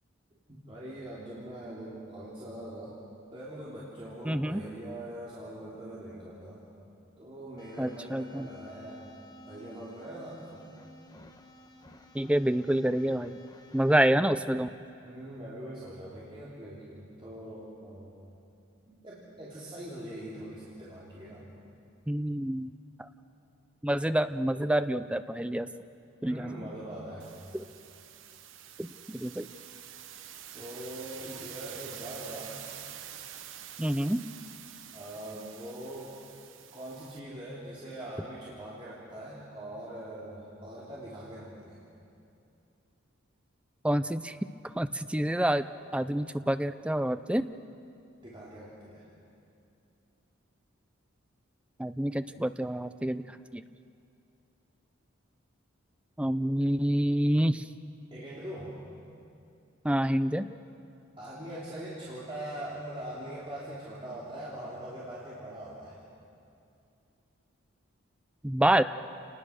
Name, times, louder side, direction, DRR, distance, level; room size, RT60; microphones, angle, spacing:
voice 1, 0.5-2.9 3.3-6.6 7.2-9.1 9.5-10.6 15.0-18.2 18.9-21.5 26.2-27.4 30.5-32.6 34.9-36.1 36.7-41.8 48.2-49.1 58.1-58.8 61.2-66.0, right 1 dB, 25° right, -8 dB, 3.3 m, -42 dB
voice 2, 4.3-4.6 7.8-8.5 12.1-13.4 13.7-14.7 22.1-22.7 23.0-23.1 23.8-25.7 26.2-26.5 27.5-27.6 28.8-29.5 33.8-34.2 43.8-44.4 44.7-45.6 45.9-47.5 51.8-53.2 53.5-53.6 56.2-57.6 59.8-60.5 68.4-68.8, right 1 dB, 5° right, 11 dB, 0.4 m, -27 dB
sound 1, 7.6-14.1, left 3 dB, 20° left, 1.2 m, -52 dB
sound 2, 27.2-37.2, right 10 dB, 65° right, 1.0 m, -47 dB
28.5 x 19.5 x 6.4 m, 2.6 s
head